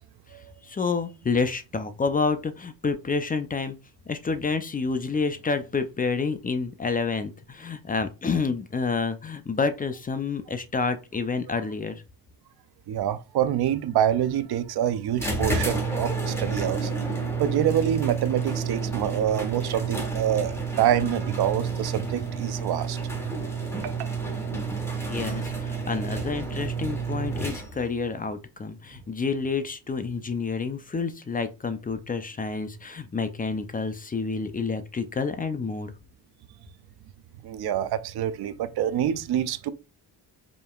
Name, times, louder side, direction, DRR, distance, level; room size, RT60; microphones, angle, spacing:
voice 1, 0.6-3.8 4.1-12.0 25.1-35.9, left 4 dB, 20° left, 0.4 m, -29 dB
voice 2, 12.9-16.9 17.4-23.3 23.8-24.1 37.4-39.7, right 10 dB, 70° right, 0.6 m, -26 dB
sound 1, 15.2-28.0, right 4 dB, 5° left, 1.3 m, -30 dB
5.0 x 2.8 x 2.3 m
cardioid pair, 110°, 40 cm